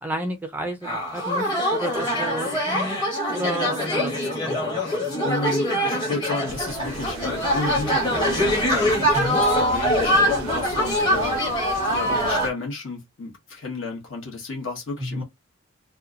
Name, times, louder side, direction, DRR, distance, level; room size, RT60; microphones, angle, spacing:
voice 1, 0.0-4.2 4.4-4.6 9.1-9.4 15.1-15.2, right 1 dB, 10° right, 0.4 m, -31 dB
sound 1, 0.8-12.5, equal, 20° left, 1.0 m, -23 dB
voice 2, 5.2-15.2, left 3 dB, 65° left, 1.2 m, -32 dB
sound 2, 6.4-12.5, right 4 dB, 85° right, 0.5 m, -37 dB
2.7 x 2.3 x 2.4 m
head